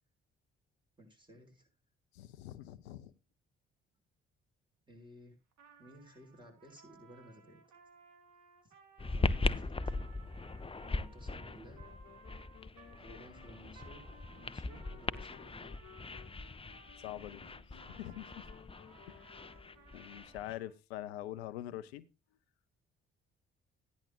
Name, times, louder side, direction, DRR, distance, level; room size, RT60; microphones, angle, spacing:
voice 1, 1.0-1.7 4.9-5.4 5.8-7.6 8.6-8.7 9.1-9.8 10.8-11.9 13.0-15.7, equal, 15° right, 2 dB, 6.0 m, -55 dB
voice 2, 2.1-3.1 17.0-17.4 17.9-18.5 19.1-19.2 19.9-22.1, left 13 dB, 90° left, 14 dB, 0.6 m, -44 dB
Trumpet, 5.5-17.3 17.7-20.7, right 6 dB, 70° right, 2.2 m, -61 dB
sound 1, 9.0-20.5, left 3 dB, 20° left, 0.7 m, -39 dB
sound 2, 11.7-20.1, left 12 dB, 70° left, 1.0 m, -60 dB
14.5 x 10.5 x 2.5 m, 0.25 s
hypercardioid pair, 50°, 31 cm